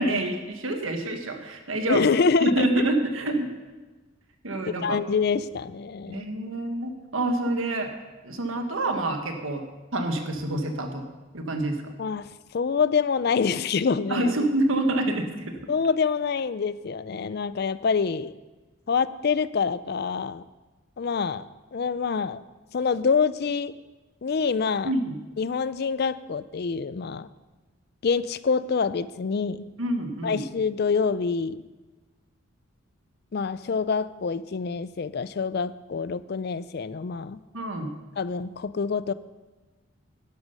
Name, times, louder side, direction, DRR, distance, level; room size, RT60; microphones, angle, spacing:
voice 1, 0.0-2.1 2.4-3.5 4.4-5.0 6.1-7.9 8.2-9.6 9.9-11.0 11.3-11.8 14.1-15.5 24.8-25.2 29.8-30.4 37.5-37.9, right 1 dB, 80° right, 4 dB, 1.6 m, -27 dB
voice 2, 1.9-2.7 4.8-6.3 12.0-14.3 15.7-18.3 18.9-20.4 21.0-21.4 21.7-22.4 22.7-23.8 24.2-24.9 25.4-27.3 28.0-29.7 30.2-31.6 33.3-37.4 38.2-39.1, left 5 dB, 50° left, 16 dB, 0.4 m, -26 dB
11.5 x 11.0 x 5.4 m, 1.2 s
head